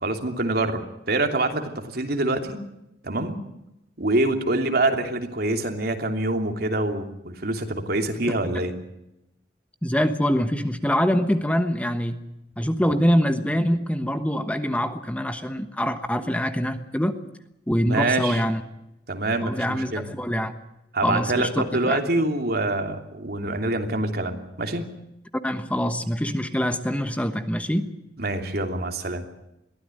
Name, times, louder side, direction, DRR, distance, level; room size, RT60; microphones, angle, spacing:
voice 1, 0.0-0.8 1.1-2.6 3.0-3.4 4.0-8.7 17.9-18.4 19.1-20.1 20.9-24.8 28.2-29.2, right 2 dB, 60° right, 4 dB, 3.0 m, -25 dB
voice 2, 9.8-12.2 12.6-17.2 17.7-18.6 19.4-20.5 21.0-22.0 25.4-27.9, equal, 10° left, 8 dB, 1.2 m, -24 dB
22.5 x 16.0 x 9.2 m, 0.88 s
head